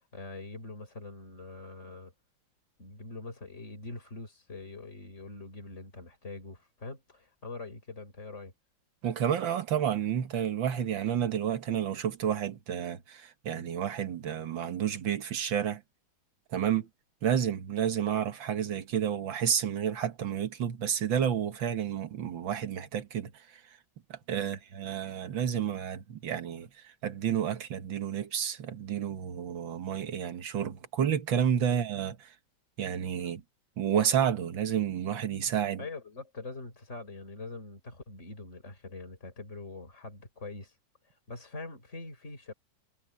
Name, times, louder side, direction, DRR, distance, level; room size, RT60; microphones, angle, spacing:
voice 1, 0.1-2.1 2.8-8.5 24.4-24.6 31.6-31.7 35.8-40.7 41.0-42.5, left 3 dB, 35° left, 5.7 m, -43 dB
voice 2, 9.0-15.8 16.5-16.9 17.2-23.6 24.1-32.3 32.8-33.4 33.8-35.8, right 9 dB, 85° right, 2.1 m, -30 dB
omnidirectional pair, 2.0 m